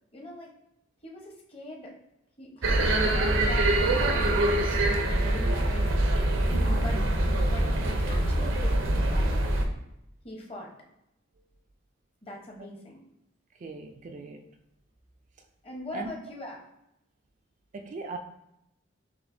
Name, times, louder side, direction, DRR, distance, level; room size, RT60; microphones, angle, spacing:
voice 1, 0.1-0.5 1.0-1.9 2.4-4.9 5.1-6.0 6.8-7.1 7.5-9.4 10.2-10.7 12.2-13.0 15.6-16.6, left 1 dB, 30° left, 0.9 m, -42 dB
sound 1, 2.6-9.6, right 1 dB, 80° right, 0.7 m, -24 dB
voice 2, 13.6-14.5 15.9-16.1 17.7-18.2, right 3 dB, 40° right, 0.3 m, -39 dB
6.3 x 2.7 x 2.6 m
head